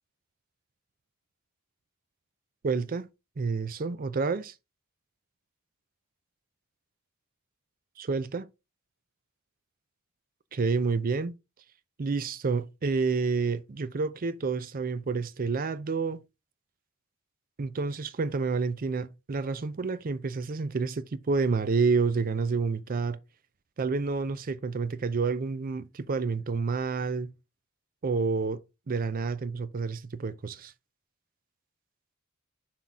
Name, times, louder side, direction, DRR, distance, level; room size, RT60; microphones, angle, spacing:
voice 1, 2.6-3.1 3.4-4.5 8.0-8.5 10.5-11.3 12.0-16.2 17.6-23.2 23.8-27.3 28.0-28.6 28.9-30.7, right 4 dB, 40° right, 0.5 m, -29 dB
6.1 x 5.7 x 3.7 m
head